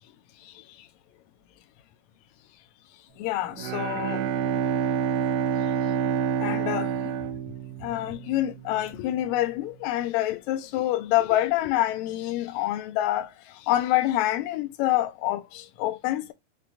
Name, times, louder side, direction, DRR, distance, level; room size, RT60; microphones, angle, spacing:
voice 1, 3.2-4.2 6.4-7.1 7.8-16.3, left 14 dB, 80° left, 1.9 m, -27 dB
Bowed string instrument, 3.5-8.4, right 7 dB, 85° right, 2.1 m, -27 dB
5.9 x 2.2 x 2.4 m
omnidirectional pair, 3.4 m